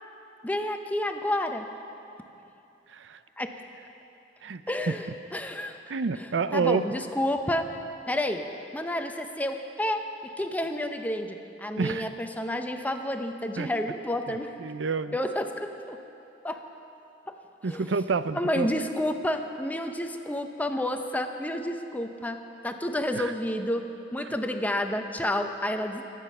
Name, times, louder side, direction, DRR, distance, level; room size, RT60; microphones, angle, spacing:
voice 1, 0.4-1.7 3.4-3.6 4.7-5.8 6.2-7.7 8.1-8.5 8.7-10.0 10.4-14.6 15.1-16.0 16.4-16.6 17.3-17.4 17.6-17.9 18.3-26.0, left 1 dB, 10° left, 5 dB, 0.7 m, -30 dB
voice 2, 2.9-3.2 4.4-4.9 5.9-6.8 11.8-12.1 13.6-13.7 14.6-15.1 17.6-18.7 23.2-23.3, right 4 dB, 90° right, 13 dB, 0.5 m, -28 dB
24.0 x 9.2 x 5.4 m, 2.8 s
head